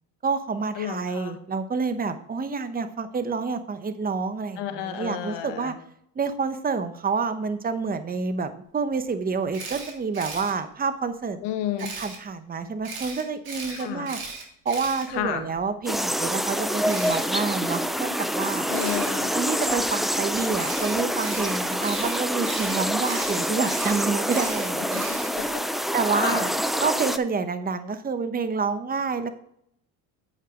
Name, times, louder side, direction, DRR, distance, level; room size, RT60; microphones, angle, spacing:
voice 1, 0.2-5.7 6.2-11.4 12.0-14.2 14.6-18.7 19.3-25.0 25.9-26.5 26.8-29.3, right 4 dB, 20° right, 10 dB, 0.9 m, -28 dB
voice 2, 0.7-1.4 4.6-5.8 11.4-11.9 13.7-14.1 15.1-15.5 18.7-19.3 24.9-25.0 25.4-25.6 26.1-26.5, left 10 dB, 65° left, 6 dB, 1.5 m, -31 dB
Camera, 9.5-10.5 11.8-12.2 12.8-15.6 16.9-17.2 18.7-19.1 20.6-25.5, right 4 dB, 50° right, 2.9 m, -37 dB
sound 1, 15.9-27.2, equal, ahead, 0.3 m, -26 dB
8.2 x 5.7 x 5.1 m, 0.70 s
supercardioid pair, 90°, 46 cm